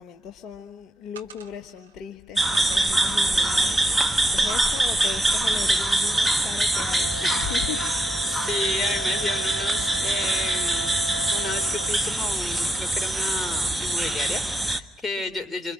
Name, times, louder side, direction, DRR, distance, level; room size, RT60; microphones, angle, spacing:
voice 1, 0.0-7.1 7.4-7.8, left 8 dB, 45° left, 1.3 m, -38 dB
sound 1, 1.2-1.9 2.5-4.0 4.5-5.0 5.5-5.9, right 7 dB, 75° right, 1.6 m, -46 dB
sound 2, 2.4-14.8, right 1 dB, 5° right, 1.5 m, -24 dB
Wind instrument woodwind instrument, 7.0-12.0, equal, 80° left, 1.0 m, -36 dB
voice 2, 7.2-8.0 8.3-10.9 11.3-15.7, left 2 dB, 15° left, 3.4 m, -33 dB
27.5 x 26.5 x 6.2 m
figure-of-eight pair, 65°, 0 cm